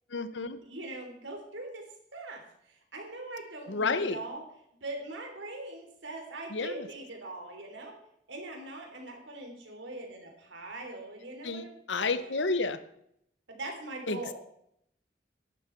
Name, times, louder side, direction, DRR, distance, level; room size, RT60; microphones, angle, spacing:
voice 1, 0.1-0.6 3.7-4.2 6.5-6.9 11.4-12.8 14.1-14.3, left 3 dB, 80° left, 12 dB, 0.9 m, -31 dB
voice 2, 0.6-1.8 2.1-4.4 4.8-7.9 8.3-12.5 13.5-14.3, right 2 dB, 85° right, 2 dB, 3.2 m, -42 dB
11.5 x 10.5 x 4.5 m, 0.73 s
head